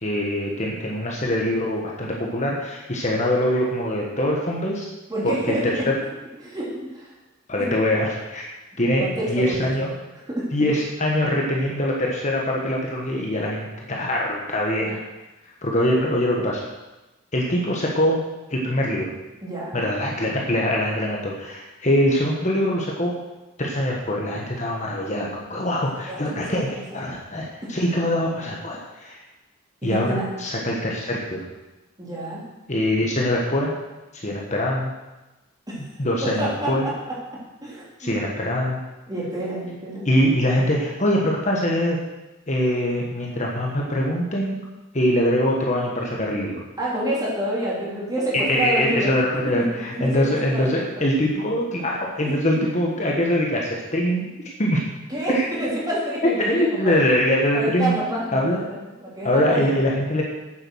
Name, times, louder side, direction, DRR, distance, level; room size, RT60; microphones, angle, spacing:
voice 1, 0.0-4.9 5.2-5.8 7.5-8.5 8.8-9.9 10.5-15.0 15.6-16.6 17.3-18.2 18.5-19.1 19.7-23.1 23.6-29.2 29.8-31.5 32.7-33.7 34.1-34.9 36.0-36.9 38.0-38.8 40.0-42.0 42.5-44.6 44.9-46.6 48.3-54.3 54.6-54.8 55.3-55.4 56.4-57.9 58.3-58.6 59.2-60.2, equal, 35° left, -2 dB, 1.4 m, -23 dB
voice 2, 5.1-5.9 6.4-7.1 7.6-7.9 9.0-9.7 10.3-10.5 19.4-19.8 25.8-27.0 29.8-30.3 32.0-32.4 35.7-35.8 36.2-38.1 39.1-40.1 46.8-49.2 49.6-50.9 52.3-52.6 55.1-57.0 57.5-60.0, right 1 dB, 20° right, -6 dB, 3.3 m, -28 dB
8.8 x 8.5 x 6.4 m, 1.1 s
head